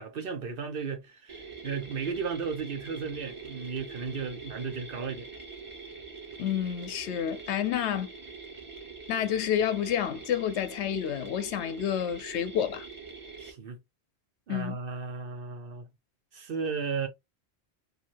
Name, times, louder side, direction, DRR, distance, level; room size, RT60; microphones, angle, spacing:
voice 1, 0.0-5.3 13.4-13.8 14.5-15.9 16.3-17.1, right 5 dB, 60° right, 0.9 m, -35 dB
sound 1, 1.3-13.5, right 4 dB, 30° right, 0.8 m, -44 dB
voice 2, 6.4-8.1 9.1-12.9 14.5-14.8, left 9 dB, 85° left, 0.9 m, -29 dB
2.7 x 2.6 x 2.8 m
omnidirectional pair, 1.1 m